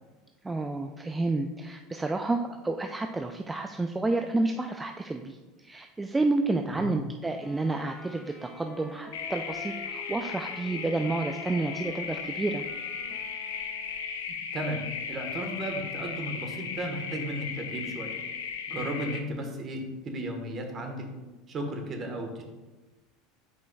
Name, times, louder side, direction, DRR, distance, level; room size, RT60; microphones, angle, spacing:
voice 1, 0.4-12.6, right 2 dB, 15° right, 5 dB, 0.4 m, -30 dB
Wind instrument woodwind instrument, 7.4-14.3, left 1 dB, 20° left, 1.4 m, -47 dB
sound 1, 9.1-19.2, left 6 dB, 85° left, 0.6 m, -36 dB
voice 2, 14.3-14.8 15.1-18.2 18.7-19.8 20.0-21.0 21.5-22.4, right 1 dB, 40° right, 3 dB, 1.3 m, -34 dB
8.1 x 5.0 x 2.3 m, 1.2 s
hypercardioid pair, 90°, 0 cm